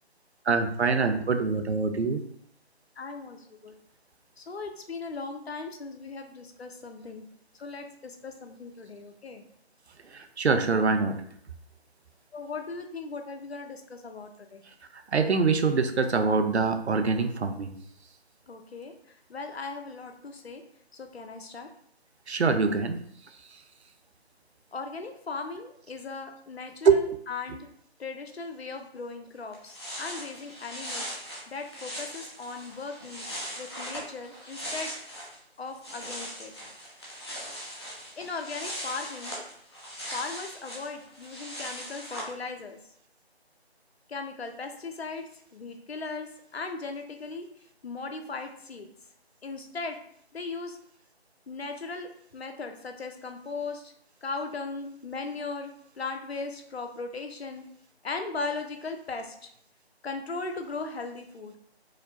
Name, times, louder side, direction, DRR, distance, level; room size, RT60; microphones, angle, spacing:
voice 1, 0.5-2.2 10.1-11.2 15.1-17.8 22.3-23.0 26.8-27.0, right 4 dB, 85° right, 7 dB, 0.6 m, -24 dB
voice 2, 3.0-3.7 4.4-7.3 7.5-9.4 12.3-14.6 18.5-20.6 20.9-21.7 24.7-27.7 28.0-31.1 31.5-33.3 33.6-34.9 35.6-36.5 38.2-39.3 40.1-42.8 44.1-47.5 47.8-48.9 49.4-50.0 50.3-50.8 51.5-53.9 54.2-57.7 58.0-59.5 60.0-61.5, left 4 dB, 70° left, 5 dB, 0.7 m, -38 dB
sound 1, 29.2-29.3 29.5-35.4 35.7-42.3, equal, 25° left, 0.7 m, -39 dB
4.9 x 2.1 x 2.7 m, 0.67 s
figure-of-eight pair, 160°, 32 cm